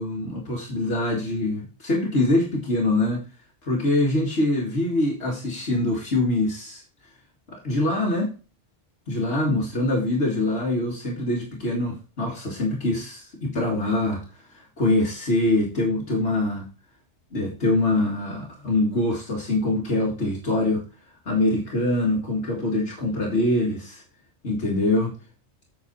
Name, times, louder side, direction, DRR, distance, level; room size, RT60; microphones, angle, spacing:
voice 1, 0.0-3.2 3.6-6.8 7.5-8.3 9.1-14.2 14.5-16.7 17.3-20.8 21.3-24.0 24.4-25.1, left 2 dB, 70° left, 2.4 m, -24 dB
8.3 x 6.2 x 4.2 m
omnidirectional pair, 1.2 m